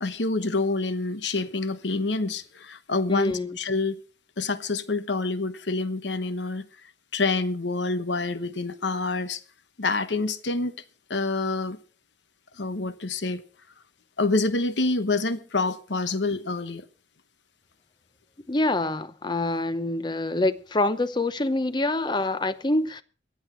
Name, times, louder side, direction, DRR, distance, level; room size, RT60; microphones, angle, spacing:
voice 1, 0.0-4.0 4.4-6.6 7.1-9.4 9.8-10.8 11.1-11.8 12.5-13.4 14.2-16.9, left 3 dB, 80° left, 1.1 m, -27 dB
voice 2, 3.1-3.6 18.5-23.0, left 2 dB, 25° left, 0.7 m, -26 dB
22.5 x 8.2 x 4.5 m
head